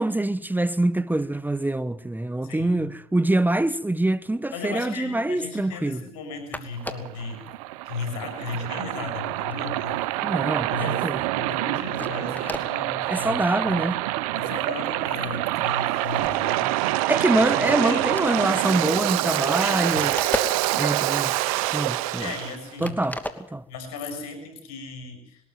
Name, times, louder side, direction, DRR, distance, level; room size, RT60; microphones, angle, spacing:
voice 1, 0.0-6.0 10.2-10.7 11.0-11.2 13.1-14.0 17.1-20.1 20.7-21.4 21.7-22.3 22.8-23.6, right 1 dB, 10° right, 1.0 m, -25 dB
voice 2, 2.4-2.9 4.5-7.5 7.8-10.4 10.7-11.1 11.3-13.4 13.6-13.8 14.3-16.6 17.6-18.1 19.6-20.0 22.2-23.0 23.7-25.4, left 3 dB, 80° left, 6.3 m, -36 dB
sound 1, 6.2-6.3 6.5-7.2 7.8-8.0 8.4-10.7 11.1-11.3 11.7-11.8 11.9-12.7 13.3-13.4 13.8-14.0 14.4-14.8 15.0-17.3 17.6-17.7 17.9-21.1 21.5-22.5 22.8-23.9, left 1 dB, 10° left, 2.6 m, -37 dB
Waves surf, 6.8-22.6, right 17 dB, 80° right, 0.8 m, -26 dB
21.0 x 13.5 x 9.4 m
hypercardioid pair, 60°, 18 cm